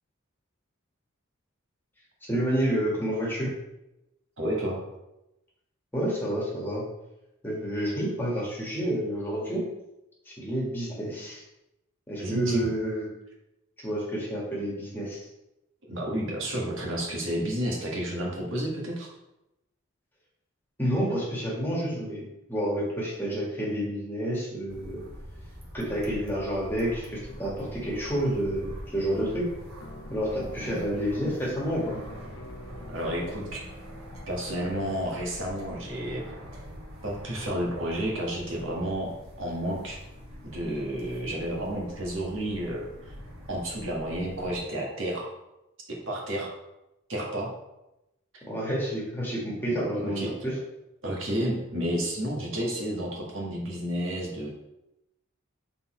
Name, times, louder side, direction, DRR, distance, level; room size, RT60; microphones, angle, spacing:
voice 1, 2.3-3.5 5.9-6.8 7.4-9.6 10.2-11.4 12.1-13.1 13.8-15.3 20.8-25.0 25.7-29.5 30.1-32.0 48.5-50.5, equal, 10° left, -4 dB, 1.6 m, -29 dB
voice 2, 4.4-4.8 12.2-12.7 15.9-19.1 30.6-30.8 32.9-33.6 34.3-36.2 37.0-39.1 39.4-40.0 40.4-42.9 43.5-45.3 45.9-46.5 47.1-47.5 49.7-50.3 51.0-54.5, right 1 dB, 65° right, -2 dB, 1.6 m, -31 dB
sound 1, 24.7-44.6, equal, 85° right, 1.5 m, -44 dB
sound 2, 29.8-33.6, left 2 dB, 75° left, 0.8 m, -45 dB
7.0 x 4.0 x 4.4 m, 0.92 s
head